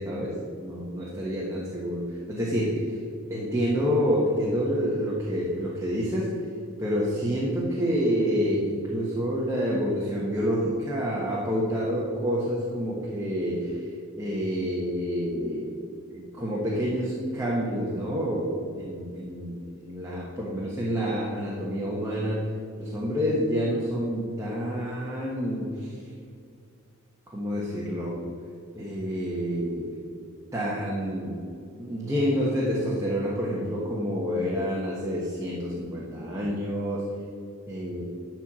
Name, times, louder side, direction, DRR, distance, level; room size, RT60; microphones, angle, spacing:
voice 1, 0.0-3.0 3.3-6.3 6.8-13.9 14.2-15.7 16.1-22.4 22.8-26.0 27.3-28.2 28.7-29.9 30.5-31.4 31.7-37.0 37.7-38.1, equal, 15° right, -5 dB, 1.3 m, -28 dB
12.0 x 4.5 x 7.4 m, 2.3 s
head